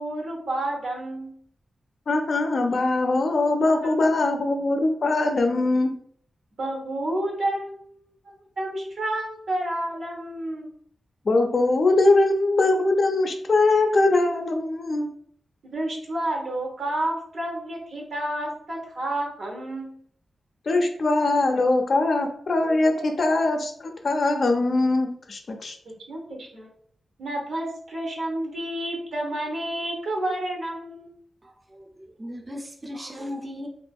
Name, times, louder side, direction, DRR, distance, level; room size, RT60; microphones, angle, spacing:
voice 1, 0.0-1.4 3.7-3.9 6.6-7.9 8.3-10.7 15.6-19.9 22.9-23.0 25.8-26.7 27.2-31.1, right 1 dB, 85° right, 0.8 m, -30 dB
voice 2, 2.1-6.0 11.3-15.1 20.7-25.8, left 2 dB, 55° left, 0.4 m, -22 dB
voice 3, 31.4-33.7, left 1 dB, 25° right, 0.4 m, -37 dB
2.7 x 2.4 x 2.3 m
wide cardioid pair, 110°, 0 cm